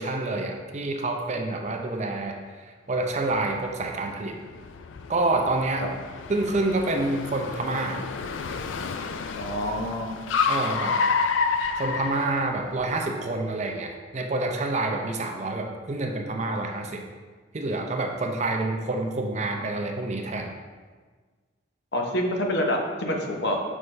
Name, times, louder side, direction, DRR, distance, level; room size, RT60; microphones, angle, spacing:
voice 1, 0.0-2.4 2.9-4.4 5.1-5.8 6.3-8.0 10.5-11.0 11.8-17.0 17.5-20.5, right 2 dB, 35° right, 2 dB, 0.5 m, -27 dB
Car, 3.1-12.9, left 5 dB, 70° left, 0.4 m, -30 dB
voice 2, 9.3-10.2 21.9-23.7, equal, 55° left, 1 dB, 0.8 m, -27 dB
6.2 x 5.2 x 3.3 m, 1.5 s
head